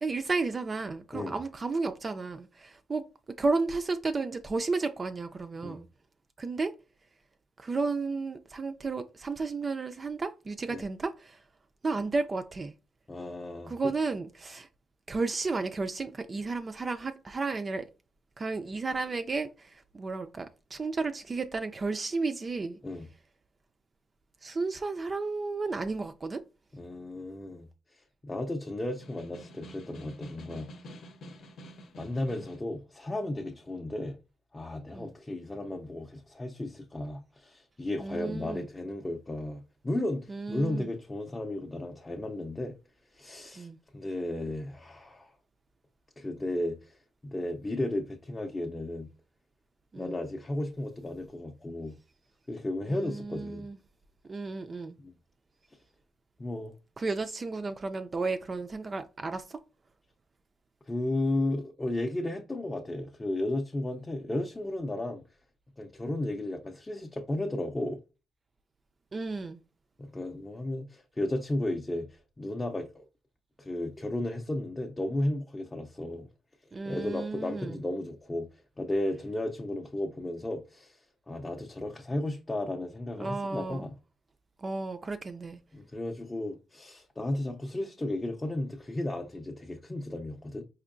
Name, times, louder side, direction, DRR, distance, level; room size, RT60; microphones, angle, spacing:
voice 1, 0.0-3.1 3.4-5.9 6.4-6.7 7.6-11.4 11.8-12.7 13.7-14.7 15.1-17.9 18.4-22.8 24.4-26.4 34.9-35.1 38.0-38.7 40.3-40.9 43.6-43.8 49.9-50.2 52.8-53.8 54.3-55.0 57.0-59.6 69.1-69.6 76.7-77.8 83.2-83.8 84.6-85.6, right 3 dB, 30° right, 0.3 m, -33 dB
voice 2, 13.1-13.7 22.8-23.1 26.7-30.7 32.0-34.2 34.5-42.7 43.1-43.7 43.9-45.3 46.2-47.0 47.2-49.1 50.0-51.9 52.5-53.7 55.0-55.1 56.4-56.7 60.9-65.2 65.8-68.0 70.0-72.1 72.4-73.1 73.6-76.3 76.9-83.9 85.7-90.6, left 1 dB, 20° left, 0.5 m, -34 dB
Snare drum, 28.9-32.7, equal, 65° left, 0.8 m, -48 dB
4.3 x 2.6 x 2.5 m
cardioid pair, 90°, 0 cm